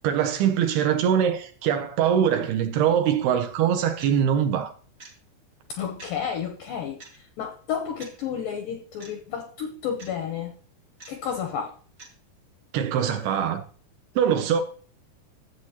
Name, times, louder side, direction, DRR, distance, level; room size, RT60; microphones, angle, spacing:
voice 1, 0.0-4.7 12.7-13.6 14.2-14.6, right 8 dB, 80° right, 2.4 m, -23 dB
sound 1, 4.0-4.2 5.0-5.1 6.0-6.2 7.0-7.2 8.0-8.2 9.0-9.1 10.0-10.2 11.0-11.2 12.0-12.1, right 3 dB, 60° right, 0.9 m, -45 dB
voice 2, 5.7-10.5 11.1-11.8, left 8 dB, 85° left, 1.9 m, -31 dB
13.0 x 7.9 x 2.9 m
omnidirectional pair, 5.0 m